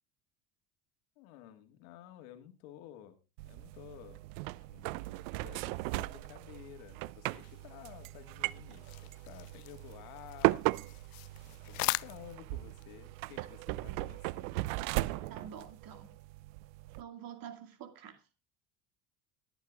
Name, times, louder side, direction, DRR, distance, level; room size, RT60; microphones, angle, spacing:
voice 1, 1.2-3.2 3.5-4.2 4.5-10.8 11.5-14.7 15.0-15.4, left 11 dB, 70° left, 1.9 m, -53 dB
sound 1, 3.4-17.0, right 21 dB, 70° right, 0.6 m, -37 dB
sound 2, 7.4-12.9, left 24 dB, 55° left, 0.5 m, -41 dB
voice 2, 15.3-16.1 17.0-18.2, right 8 dB, 55° right, 2.4 m, -47 dB
21.5 x 9.1 x 2.4 m
hypercardioid pair, 70°, 43 cm